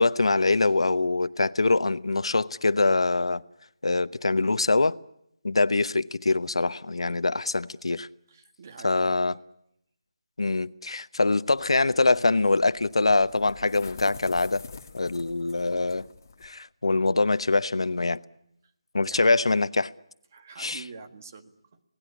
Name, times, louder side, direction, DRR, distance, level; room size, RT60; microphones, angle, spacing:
voice 1, 0.0-3.4 3.8-5.0 5.4-8.1 8.8-9.4 10.4-14.6 14.9-16.1 16.4-18.2 18.9-19.9 20.6-20.8, left 3 dB, 85° left, 0.9 m, -24 dB
voice 2, 8.3-9.4 19.0-19.5 20.3-21.8, right 5 dB, 30° right, 1.7 m, -46 dB
sound 1, 11.5-16.5, left 4 dB, 35° left, 1.8 m, -46 dB
27.5 x 18.0 x 9.7 m
figure-of-eight pair, 170°, 3 cm